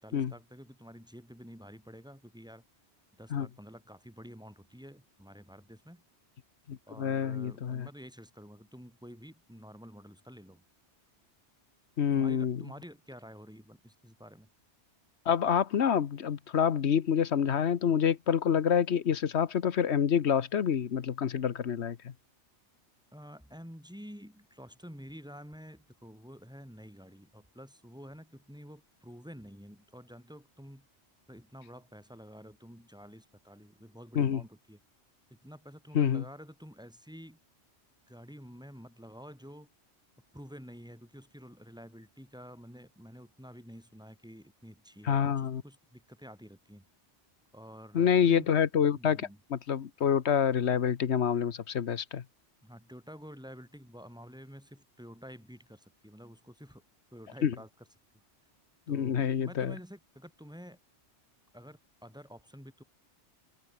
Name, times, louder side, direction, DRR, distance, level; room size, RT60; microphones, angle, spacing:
voice 1, 0.0-2.6 3.2-6.0 6.9-10.6 12.1-14.5 23.1-30.9 31.3-34.8 35.3-37.4 38.1-39.7 40.3-46.9 47.5-48.5 49.0-49.4 52.6-56.8 57.1-57.7 58.9-60.8 61.5-62.8, equal, 5° right, 4.6 m, -49 dB
voice 2, 6.7-7.9 12.0-12.6 15.3-22.1 34.1-34.4 35.9-36.2 45.0-45.6 47.9-52.2 57.4-57.5 58.9-59.7, left 8 dB, 70° left, 1.2 m, -27 dB
open air
omnidirectional pair, 1.2 m